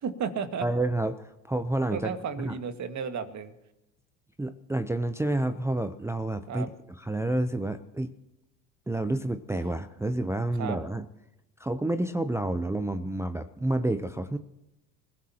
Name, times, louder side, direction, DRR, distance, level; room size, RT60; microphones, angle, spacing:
voice 1, 0.0-0.6 1.9-3.5 6.5-6.7 10.6-10.8, right 6 dB, 40° right, 8 dB, 1.9 m, -33 dB
voice 2, 0.6-2.2 2.4-2.6 4.4-8.1 8.9-11.0 11.6-14.4, right 1 dB, 5° right, 8 dB, 0.7 m, -29 dB
27.5 x 16.5 x 2.9 m, 0.88 s
hypercardioid pair, 75°, 43 cm